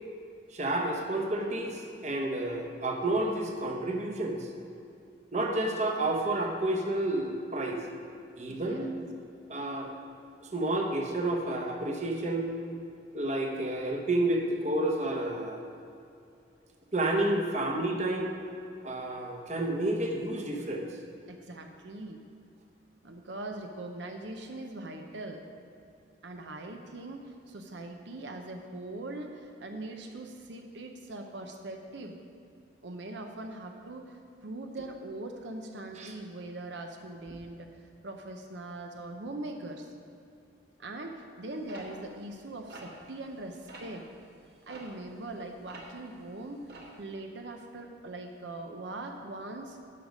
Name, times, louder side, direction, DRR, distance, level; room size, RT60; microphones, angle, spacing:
voice 1, 0.5-4.5 5.3-7.8 8.4-8.9 9.5-9.9 10.4-12.5 13.1-15.6 16.9-18.3 18.8-21.0 36.0-36.1, right 1 dB, 40° right, 2 dB, 1.0 m, -30 dB
voice 2, 8.5-8.9 21.3-22.2 23.0-25.4 26.2-32.2 32.8-34.1 34.4-37.7 38.0-39.9 40.8-44.0 44.7-46.7 47.0-49.8, right 2 dB, 80° right, 4 dB, 0.7 m, -41 dB
sound 1, 41.7-43.4 43.7-44.0 44.7-46.1 46.4-47.0, right 2 dB, 60° right, 1.7 m, -47 dB
11.0 x 6.5 x 5.3 m, 2.6 s
head